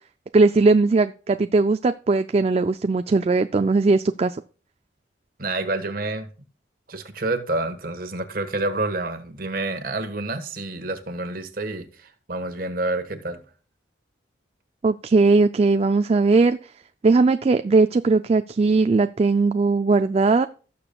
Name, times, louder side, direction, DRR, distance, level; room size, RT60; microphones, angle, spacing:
voice 1, 0.3-4.4 14.8-16.7 17.0-20.5, right 3 dB, 30° right, 0.3 m, -19 dB
voice 2, 5.4-6.3 6.9-13.4, right 2 dB, 50° right, 1.4 m, -28 dB
17.5 x 6.9 x 2.3 m
head